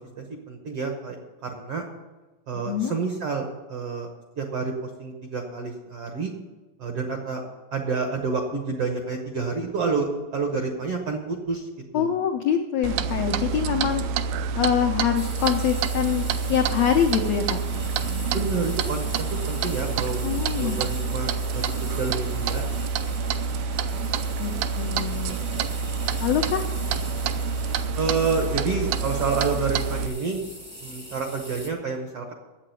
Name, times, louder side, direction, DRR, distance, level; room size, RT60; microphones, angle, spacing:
voice 1, 0.2-1.2 1.4-1.8 2.5-4.1 4.4-6.3 6.8-7.4 7.7-11.7 11.9-12.1 18.3-22.6 27.9-30.4 30.8-32.3, right 4 dB, 70° right, 3 dB, 1.4 m, -29 dB
voice 2, 2.7-3.0 11.9-14.0 14.5-17.6 20.2-20.8 24.4-25.4 26.2-26.6, left 8 dB, 85° left, 4 dB, 1.5 m, -25 dB
Clock, 12.8-30.1, right 5 dB, 90° right, 2.4 m, -27 dB
sound 1, 15.1-31.7, equal, 25° right, 0.4 m, -42 dB
8.6 x 8.3 x 9.3 m, 1.2 s
omnidirectional pair, 4.1 m